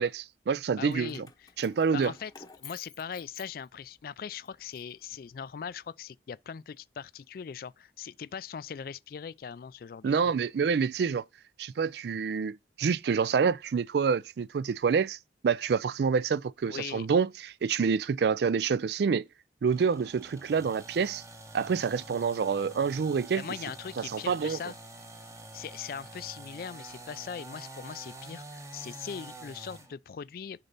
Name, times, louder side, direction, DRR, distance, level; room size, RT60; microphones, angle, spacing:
voice 1, 0.0-1.3 1.6-2.1 10.0-11.2 11.6-15.2 15.4-19.3 19.6-21.2 21.5-23.4 24.0-24.6, right 6 dB, 60° right, 0.3 m, -27 dB
voice 2, 0.8-1.5 1.9-2.3 2.6-10.3 16.7-17.1 23.3-24.7 25.5-30.6, left 7 dB, 50° left, 0.3 m, -40 dB
Keys jangling, 0.8-4.0 4.4-5.7, left 6 dB, 20° left, 0.8 m, -52 dB
sound 1, 19.7-29.9, right 2 dB, 15° right, 0.9 m, -47 dB
6.8 x 4.2 x 4.0 m
head